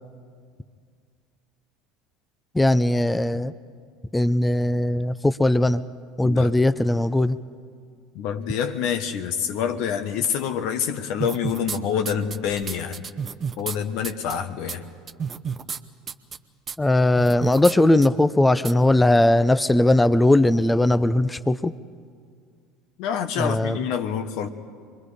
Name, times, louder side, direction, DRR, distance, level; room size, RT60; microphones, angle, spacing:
voice 1, 2.5-3.5 4.1-5.8 6.2-7.4 16.8-21.7 23.4-23.8, left 1 dB, 10° left, 14 dB, 0.7 m, -19 dB
voice 2, 8.1-13.0 13.6-14.8 23.0-24.5, left 8 dB, 60° left, 8 dB, 1.3 m, -27 dB
sound 1, 11.2-11.8 12.0-13.8 14.0-14.3 14.7-14.8 15.1-15.8 16.1-16.4 16.7-16.8 17.2-17.7 18.0-18.1 18.6-18.7, right 6 dB, 35° right, 0.9 m, -31 dB
26.0 x 22.0 x 5.0 m, 2.1 s
hypercardioid pair, 75°, 0 cm